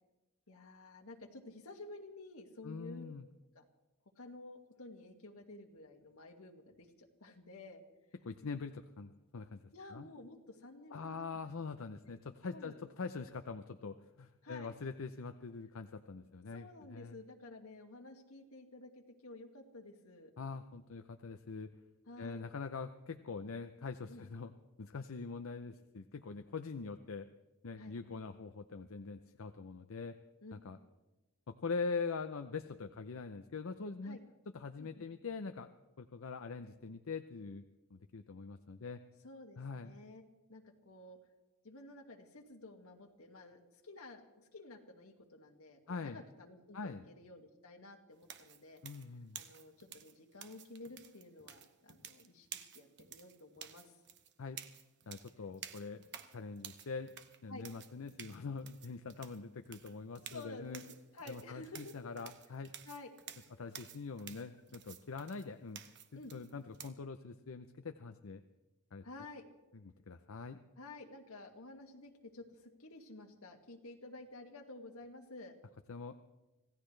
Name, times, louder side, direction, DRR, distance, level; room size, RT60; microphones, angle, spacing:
voice 1, 0.5-3.0 3.5-3.6 4.2-7.8 9.7-11.2 12.0-12.2 12.5-12.7 14.4-14.7 16.5-20.3 22.1-22.4 24.1-24.2 27.8-28.0 30.4-30.5 30.8-30.9 34.0-34.2 34.8-35.0 39.2-40.2 40.5-41.2 41.6-48.8 49.3-54.0 57.5-57.6 60.2-60.8 61.1-62.0 62.8-63.1 66.1-66.3 69.0-69.5 70.8-75.5, left 2 dB, 90° left, 3 dB, 2.1 m, -52 dB
voice 2, 2.6-3.3 8.2-9.6 9.9-10.1 10.9-17.2 20.4-21.7 22.2-24.5 24.8-27.3 27.6-30.2 30.5-30.8 31.5-34.2 34.5-37.6 37.9-39.0 39.6-39.9 45.9-46.2 46.7-47.0 48.8-49.4 54.4-54.6 55.1-56.0 56.3-57.1 57.4-60.8 61.3-62.7 63.6-65.8 66.1-68.4 68.9-69.0 70.1-70.6 75.9-76.1, left 4 dB, 70° left, 8 dB, 0.6 m, -43 dB
sound 1, 48.2-66.9, right 9 dB, 55° right, 1.0 m, -52 dB
26.0 x 16.5 x 3.3 m, 1.1 s
head